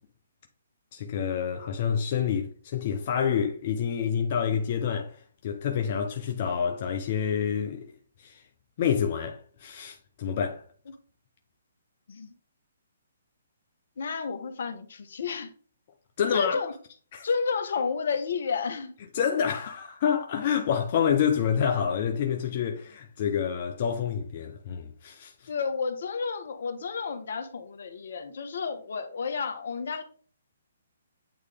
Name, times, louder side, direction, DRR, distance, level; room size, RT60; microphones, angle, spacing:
voice 1, 0.9-7.9 8.2-8.4 8.8-10.6 16.2-16.6 17.1-17.3 19.1-25.5, left 7 dB, 45° left, 0.8 m, -28 dB
voice 2, 14.0-15.5 16.3-16.7 17.2-18.9 25.5-30.0, left 5 dB, 65° left, 1.1 m, -31 dB
8.9 x 3.2 x 3.6 m
hypercardioid pair, 135°, 0 cm